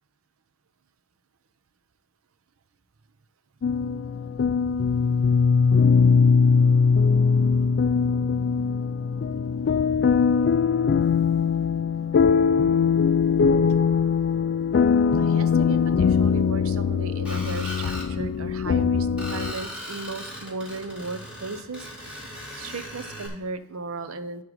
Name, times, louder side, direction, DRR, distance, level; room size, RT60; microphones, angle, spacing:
sound 1, 3.6-19.5, left 5 dB, 50° left, 0.3 m, -21 dB
voice 1, 12.8-13.6 15.1-24.4, right 3 dB, 75° right, 11 dB, 0.7 m, -36 dB
Screech, 17.2-18.1 19.2-23.3, equal, 5° right, 2.2 m, -38 dB
11.0 x 3.7 x 6.5 m, 0.88 s
head